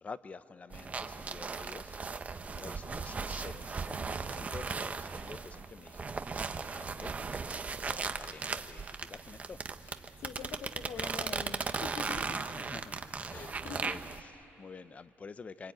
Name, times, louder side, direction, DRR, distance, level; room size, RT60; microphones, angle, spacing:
voice 1, 0.0-2.0 2.3-9.6 12.5-12.9 13.3-15.7, left 4 dB, 30° left, 14 dB, 0.7 m, -49 dB
sound 1, 0.7-14.2, right 4 dB, 30° right, 0.9 m, -37 dB
voice 2, 9.9-12.4 13.3-13.9, left 6 dB, 70° left, 6 dB, 1.5 m, -44 dB
25.5 x 25.0 x 9.3 m, 2.8 s
cardioid pair, 130°, 5 cm